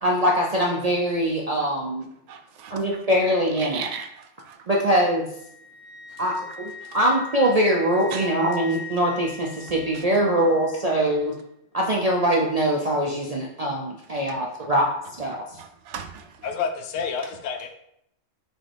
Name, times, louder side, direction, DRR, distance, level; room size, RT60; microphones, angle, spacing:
voice 1, 0.0-2.1 2.7-3.9 4.7-5.3 6.2-11.4 11.7-14.9 15.2-15.4, equal, 55° right, -2 dB, 0.4 m, -23 dB
voice 2, 2.3-2.9 3.6-4.6 6.8-7.0 8.1-8.3 9.9-10.0 14.2-14.7 15.6-16.5, right 7 dB, 70° right, 6 dB, 0.8 m, -38 dB
Wind instrument woodwind instrument, 4.9-10.8, left 3 dB, 40° left, 2.0 m, -41 dB
voice 3, 16.4-17.7, left 6 dB, 75° left, 5 dB, 0.9 m, -29 dB
5.9 x 2.4 x 3.3 m, 0.75 s
omnidirectional pair, 1.3 m